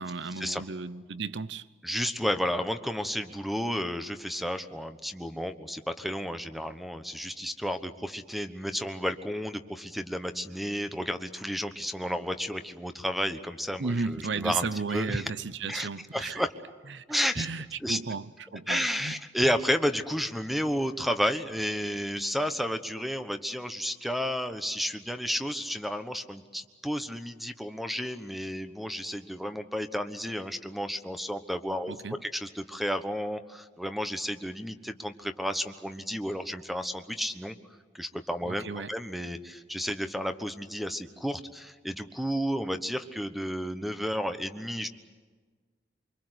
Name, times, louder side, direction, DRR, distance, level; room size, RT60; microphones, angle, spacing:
voice 1, 0.0-1.7 13.8-16.4 16.9-17.0 17.3-18.3 18.5-19.2 19.4-19.5 31.9-32.2 38.5-38.9, right 4 dB, 80° right, 0.8 m, -34 dB
voice 2, 1.8-15.3 15.7-16.5 17.1-17.5 17.8-18.0 18.7-31.9 32.2-37.6 37.9-44.9, equal, ahead, 1.1 m, -32 dB
25.0 x 24.5 x 8.1 m
head